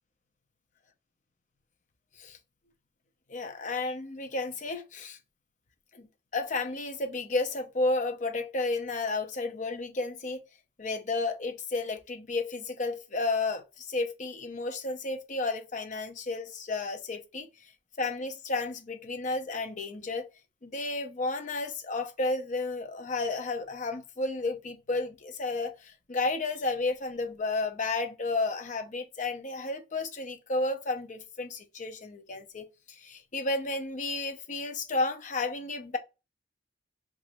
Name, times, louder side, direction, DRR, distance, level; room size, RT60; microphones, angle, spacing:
voice 1, 3.3-5.2 5.9-6.1 6.3-10.4 10.8-17.7 18.0-20.3 20.6-36.0, left 3 dB, 40° left, 0.6 m, -32 dB
2.9 x 2.4 x 4.1 m
head